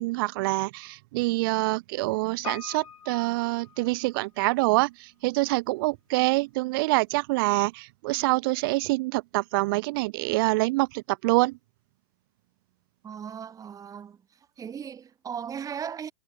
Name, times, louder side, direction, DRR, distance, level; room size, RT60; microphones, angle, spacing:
voice 1, 0.0-11.6, right 23 dB, 40° right, 0.4 m, -26 dB
Piano, 2.4-4.5 4.8-4.9, left 8 dB, 75° left, 1.5 m, -43 dB
voice 2, 13.0-14.2 14.6-16.1, right 8 dB, 20° right, 3.9 m, -37 dB
hypercardioid pair, 115°, 18 cm